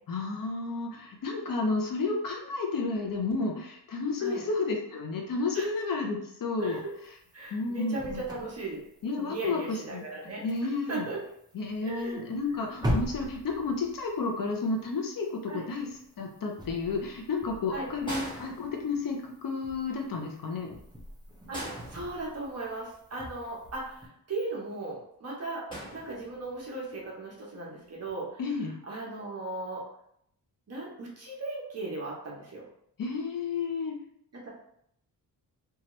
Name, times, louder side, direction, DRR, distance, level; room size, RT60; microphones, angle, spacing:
voice 1, 0.1-6.8 7.5-8.2 9.0-10.0 10.4-11.1 11.5-15.9 16.2-20.7 28.4-28.7 33.0-34.0, left 3 dB, 55° left, 1 dB, 0.6 m, -31 dB
sound 1, 6.6-24.1, equal, 10° right, 0.5 m, -42 dB
voice 2, 6.6-6.9 7.3-8.8 9.1-10.4 10.9-11.2 11.8-12.2 15.5-15.7 17.7-17.9 21.5-25.6 25.9-28.4 28.9-29.8 30.7-32.6 34.3-34.5, right 2 dB, 40° right, -3 dB, 0.9 m, -37 dB
sound 2, 18.0-19.3 21.5-22.7 25.7-26.6 27.9-28.1, right 1 dB, 10° left, 1.1 m, -41 dB
2.8 x 2.3 x 3.0 m, 0.72 s
wide cardioid pair, 130°, 41 cm